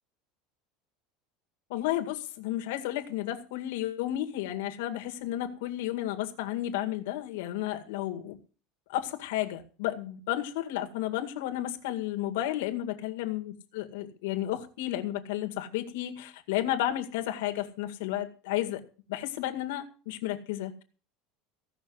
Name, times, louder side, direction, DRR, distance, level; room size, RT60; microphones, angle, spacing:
voice 1, 1.7-8.4 8.9-18.8 19.1-20.8, left 13 dB, 80° left, 5 dB, 2.0 m, -32 dB
16.5 x 6.3 x 7.9 m, 0.38 s
cardioid pair, 165°, 0 cm